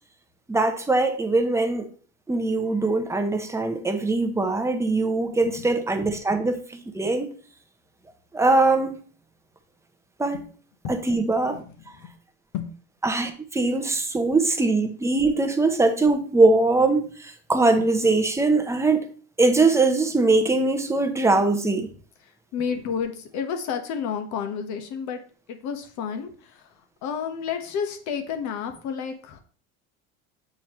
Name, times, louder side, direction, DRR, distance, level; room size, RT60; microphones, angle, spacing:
voice 1, 0.5-1.9 2.3-7.3 8.3-9.0 10.2-10.4 10.9-12.0 13.0-19.1 19.4-21.9, right 3 dB, 10° right, 0.7 m, -22 dB
voice 2, 11.4-12.2 12.5-12.7 22.2-25.2 25.5-26.7 27.0-29.4, left 7 dB, 60° left, 1.2 m, -31 dB
7.3 x 4.4 x 3.1 m
supercardioid pair, 115°, 33 cm